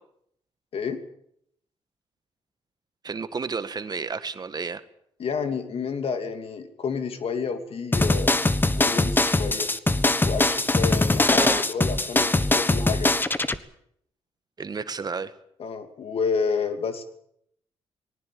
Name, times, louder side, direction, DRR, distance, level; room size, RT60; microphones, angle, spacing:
voice 1, 3.0-4.8 11.4-11.6 14.6-15.3, right 5 dB, 40° right, 11 dB, 1.6 m, -31 dB
voice 2, 5.2-8.4 8.8-9.7 10.2-13.2 15.6-17.0, left 5 dB, 65° left, 8 dB, 2.7 m, -30 dB
sound 1, 7.9-13.6, left 2 dB, 20° left, 1.3 m, -22 dB
20.0 x 18.5 x 8.7 m, 0.71 s
cardioid pair, 85°, 11 cm